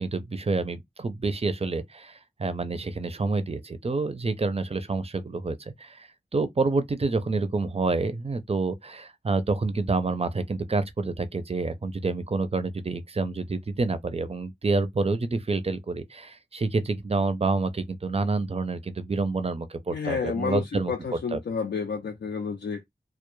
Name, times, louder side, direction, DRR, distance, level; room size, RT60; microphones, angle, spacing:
voice 1, 0.0-20.9 21.3-21.4, right 3 dB, 35° right, 0.4 m, -28 dB
voice 2, 19.9-22.9, left 5 dB, 85° left, 0.4 m, -30 dB
2.2 x 2.0 x 3.0 m
wide cardioid pair, 45°, 17 cm